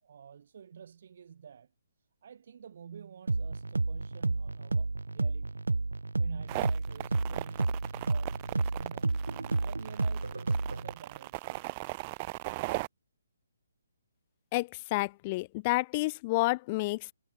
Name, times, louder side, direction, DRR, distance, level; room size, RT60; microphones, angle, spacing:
voice 1, 0.0-1.7 2.2-5.6 6.2-9.2 9.5-11.6, right 7 dB, 50° right, 7.7 m, -50 dB
sound 1, 3.3-10.9, right 3 dB, 75° right, 0.5 m, -31 dB
sound 2, 6.5-12.9, right 23 dB, 25° right, 1.3 m, -38 dB
voice 2, 14.5-17.1, left 22 dB, 25° left, 0.4 m, -30 dB
figure-of-eight pair, 135°, 0 cm